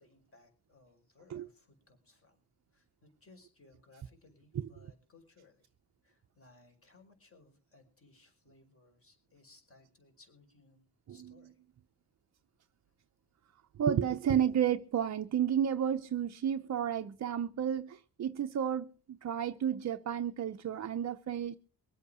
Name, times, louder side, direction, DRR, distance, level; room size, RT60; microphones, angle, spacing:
voice 1, 0.0-2.4 2.7-5.7 6.0-11.6, left 3 dB, 35° left, 5.1 m, -63 dB
voice 2, 13.8-21.6, right 9 dB, 45° right, 0.7 m, -32 dB
23.0 x 8.3 x 4.9 m
cardioid pair, 120°, 40 cm